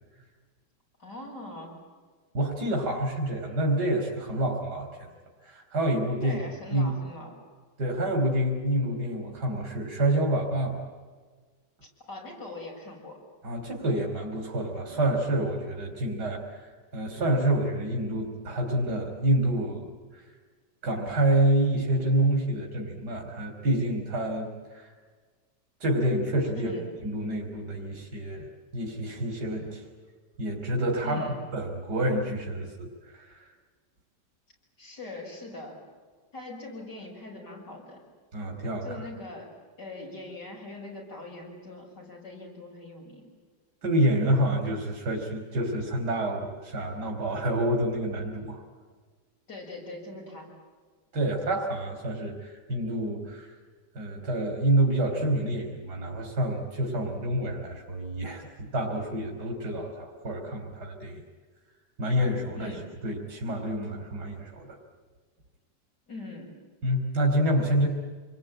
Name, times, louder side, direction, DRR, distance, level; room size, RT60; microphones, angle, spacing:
voice 1, 1.0-1.8 6.2-7.4 12.1-13.2 26.5-26.9 31.0-31.4 34.8-35.8 36.3-38.0 38.8-43.3 49.5-50.5 62.6-62.8 66.1-66.6, left 2 dB, 75° left, -1 dB, 7.7 m, -42 dB
voice 2, 2.3-5.1 5.4-6.4 6.7-6.9 7.8-10.9 13.4-20.0 20.8-24.9 25.8-26.7 27.0-28.5 28.7-29.8 30.4-33.5 38.3-39.0 43.8-48.6 51.1-53.5 53.9-61.2 62.0-62.8 63.0-64.8 66.8-67.9, right 1 dB, 70° right, 1 dB, 3.9 m, -28 dB
27.5 x 22.0 x 8.9 m, 1.5 s
omnidirectional pair, 1.8 m